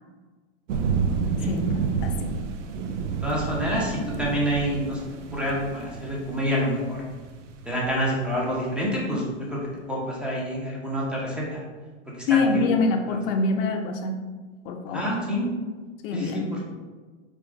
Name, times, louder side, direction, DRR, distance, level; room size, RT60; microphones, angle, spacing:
sound 1, 0.7-8.9, right 5 dB, 75° right, 0.5 m, -30 dB
voice 1, 1.5-2.3 12.3-14.2 14.6-15.1 16.0-16.5, left 3 dB, 50° left, 4 dB, 0.6 m, -25 dB
voice 2, 3.2-5.0 5.3-7.0 7.7-9.6 9.9-11.6 12.3-12.6 14.9-15.5 16.1-16.4, equal, 5° right, -5 dB, 0.6 m, -27 dB
3.6 x 2.3 x 3.6 m, 1.4 s
hypercardioid pair, 125°, 37 cm